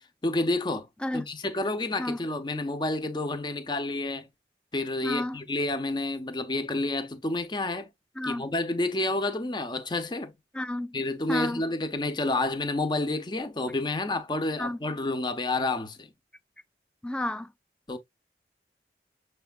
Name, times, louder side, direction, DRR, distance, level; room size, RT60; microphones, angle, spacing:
voice 1, 0.2-0.9 1.1-4.3 4.7-7.9 8.2-10.3 10.9-16.1 17.9-18.0, left 2 dB, 25° left, 0.7 m, -29 dB
voice 2, 5.0-5.4 8.2-8.5 10.5-10.9 11.3-11.6 14.6-14.8 17.0-17.5, left 1 dB, 5° left, 0.3 m, -31 dB
6.8 x 3.3 x 2.3 m
head